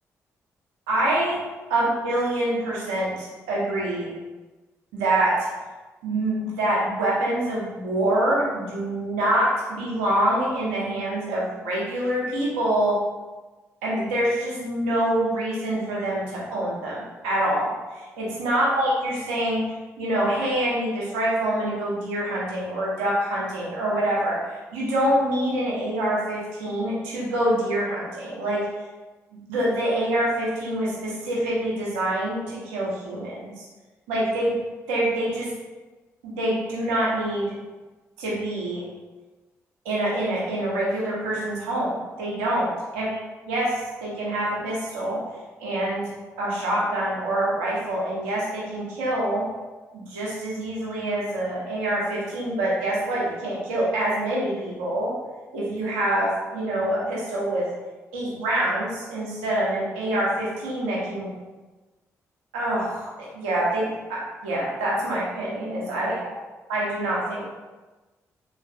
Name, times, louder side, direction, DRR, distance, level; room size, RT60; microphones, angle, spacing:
voice 1, 0.9-1.4 1.7-4.1 4.9-5.5 6.0-13.0 13.8-19.6 20.0-28.6 29.5-33.6 34.1-34.5 34.9-35.5 36.4-37.5 38.2-38.8 39.8-43.1 43.5-45.2 45.6-46.0 46.4-49.4 49.9-55.1 55.5-57.6 58.1-61.3 62.5-63.8 64.1-66.3 66.7-67.4, right 1 dB, 85° right, -5 dB, 0.7 m, -25 dB
3.2 x 2.4 x 2.4 m, 1.2 s
hypercardioid pair, 40°, 7 cm